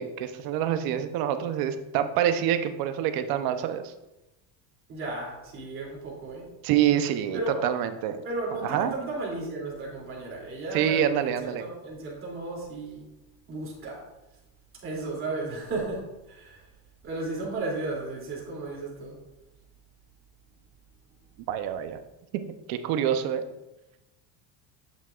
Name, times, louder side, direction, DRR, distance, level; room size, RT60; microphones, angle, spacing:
voice 1, 0.0-3.9 6.6-8.2 8.6-8.9 10.7-11.6 21.5-22.0 22.7-23.4, right 10 dB, 60° right, 9 dB, 0.8 m, -26 dB
voice 2, 4.9-6.5 7.3-7.6 8.2-13.0 13.5-14.0 14.8-16.7 17.0-19.2, right 2 dB, 30° right, -4 dB, 2.8 m, -34 dB
8.4 x 7.2 x 2.4 m, 0.98 s
cardioid pair, 150°, 41 cm